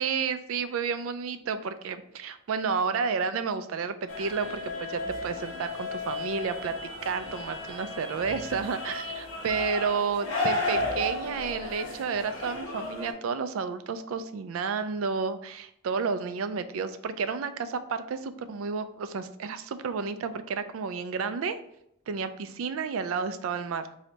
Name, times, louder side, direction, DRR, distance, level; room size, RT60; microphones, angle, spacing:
voice 1, 0.0-6.7 7.0-21.6 22.1-23.9, right 5 dB, 80° right, 11 dB, 0.4 m, -31 dB
sound 1, 4.1-13.1, left 2 dB, 75° left, 1.2 m, -34 dB
3.2 x 2.7 x 3.9 m, 0.76 s
head